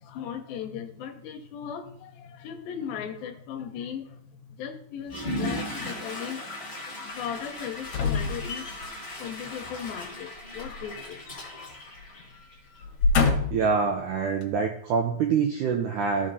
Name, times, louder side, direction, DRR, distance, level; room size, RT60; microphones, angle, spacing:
voice 1, 0.0-4.2 4.6-8.7 9.2-11.2, left 8 dB, 80° left, 6 dB, 2.5 m, -37 dB
Water / Toilet flush, 5.0-12.8, left 1 dB, 20° left, 1.8 m, -37 dB
sound 1, 7.8-9.0 10.6-11.7 12.0-12.2 12.8-13.7 14.4-14.5, left 4 dB, 60° left, 2.1 m, -27 dB
voice 2, 13.5-16.3, right 5 dB, 90° right, 2 dB, 1.8 m, -25 dB
14.5 x 5.3 x 2.7 m, 0.65 s
omnidirectional pair, 4.4 m